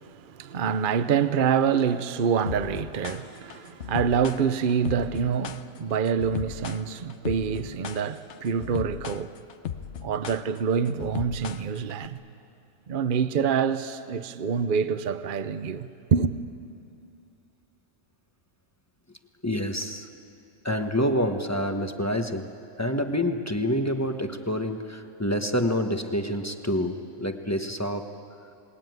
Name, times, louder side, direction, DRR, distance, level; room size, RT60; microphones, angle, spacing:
voice 1, 0.0-9.4 10.0-12.2 12.9-16.3, right 7 dB, 45° right, 0.8 m, -26 dB
sound 1, 2.5-12.1, left 9 dB, 60° left, 1.0 m, -36 dB
voice 2, 19.4-20.1 20.6-22.5 22.8-28.1, equal, 15° left, 1.1 m, -27 dB
28.5 x 20.0 x 9.4 m
omnidirectional pair, 1.4 m